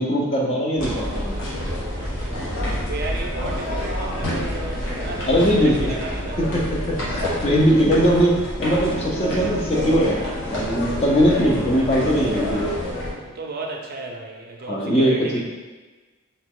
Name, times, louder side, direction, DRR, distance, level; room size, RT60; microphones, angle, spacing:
voice 1, 0.0-1.3 2.4-2.7 5.2-6.0 6.4-10.2 10.5-12.6 14.7-15.4, equal, 30° left, -2 dB, 0.7 m, -20 dB
sound 1, 0.8-13.1, left 1 dB, 65° left, 1.3 m, -28 dB
voice 2, 2.0-6.4 13.2-15.4, right 3 dB, 45° right, 1 dB, 0.5 m, -34 dB
4.2 x 2.9 x 3.7 m, 1.3 s
head